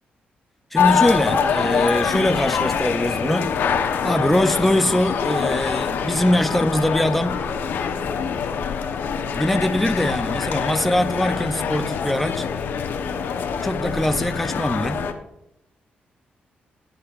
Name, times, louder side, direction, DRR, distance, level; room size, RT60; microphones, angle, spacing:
sound 1, 0.7-15.1, left 6 dB, 80° left, 0.9 m, -24 dB
voice 1, 0.7-3.5 4.0-7.4 9.3-12.5 13.6-15.1, left 1 dB, 5° left, 0.5 m, -22 dB
16.0 x 8.6 x 2.5 m
wide cardioid pair, 140°, 3 cm